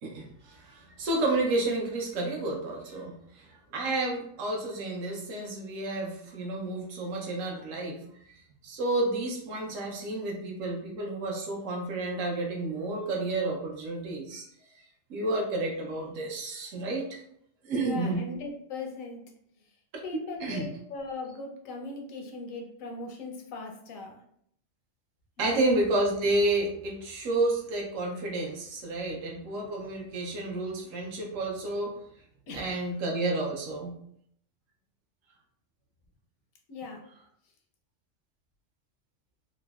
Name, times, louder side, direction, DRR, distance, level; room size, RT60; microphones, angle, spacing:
voice 1, 0.0-8.0 8.6-14.4 15.1-17.2 17.6-18.2 20.4-20.7 25.4-31.9 32.5-33.9, right 2 dB, 75° right, 0 dB, 1.1 m, -30 dB
voice 2, 17.8-19.2 20.0-24.2 25.4-25.7 29.1-29.2 32.5-32.8 36.7-37.0, left 3 dB, 90° left, 2 dB, 1.1 m, -39 dB
3.7 x 2.0 x 2.3 m, 0.68 s
omnidirectional pair, 1.4 m